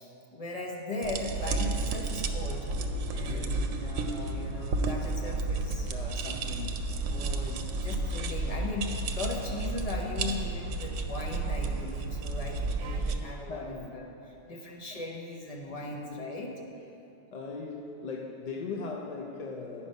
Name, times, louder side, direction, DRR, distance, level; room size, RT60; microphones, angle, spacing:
voice 1, 0.0-2.7 3.1-6.7 7.1-16.5, left 2 dB, 35° left, -1 dB, 1.0 m, -38 dB
sound 1, 1.0-13.2, right 2 dB, 90° right, 1.0 m, -32 dB
voice 2, 3.3-3.8 13.5-14.0 14.6-14.7 15.7-16.3 17.3-19.9, left 4 dB, 50° left, 0 dB, 0.5 m, -39 dB
9.5 x 5.5 x 5.2 m, 2.7 s
omnidirectional pair, 1.3 m